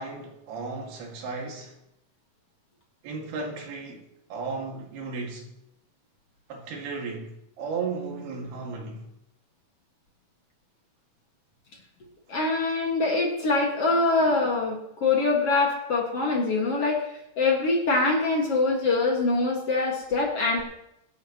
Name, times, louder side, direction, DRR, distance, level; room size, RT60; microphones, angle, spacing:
voice 1, 0.0-1.7 3.0-4.0 4.3-5.5 6.5-9.1, right 4 dB, 85° right, 4.0 m, -35 dB
voice 2, 12.3-17.1 17.4-20.6, left 3 dB, 45° left, 2.3 m, -24 dB
23.5 x 11.0 x 3.0 m
omnidirectional pair, 4.4 m